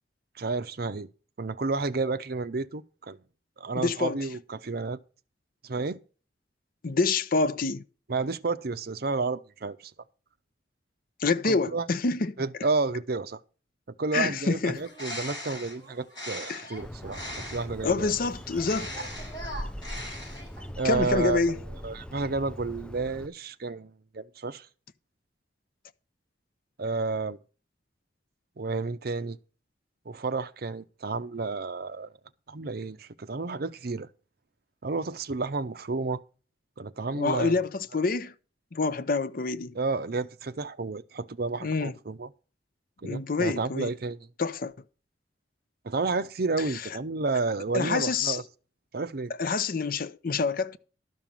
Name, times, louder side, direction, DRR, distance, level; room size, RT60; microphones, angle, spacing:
voice 1, 0.4-1.1 1.4-3.2 3.6-5.0 5.6-6.0 8.1-9.9 11.4-11.9 12.4-13.4 14.0-18.1 20.8-24.7 26.8-27.4 28.6-29.4 30.1-32.1 32.5-34.1 34.8-36.2 36.8-37.5 39.7-42.3 43.0-44.2 45.8-48.4 48.9-49.3, right 3 dB, 60° right, 0.7 m, -31 dB
voice 2, 3.7-4.2 6.8-7.8 11.2-12.4 14.1-14.8 16.5-16.7 17.8-18.9 20.8-21.6 37.1-38.3 38.7-39.7 41.6-41.9 43.0-43.9 44.4-44.7 46.7-46.8 47.7-48.4 49.4-50.8, left 4 dB, 55° left, 0.6 m, -27 dB
Bird, 14.7-17.8 18.5-20.7, equal, 25° left, 5.1 m, -39 dB
Bird 2, 16.8-23.3, equal, 5° left, 0.5 m, -41 dB
12.5 x 5.4 x 7.5 m
head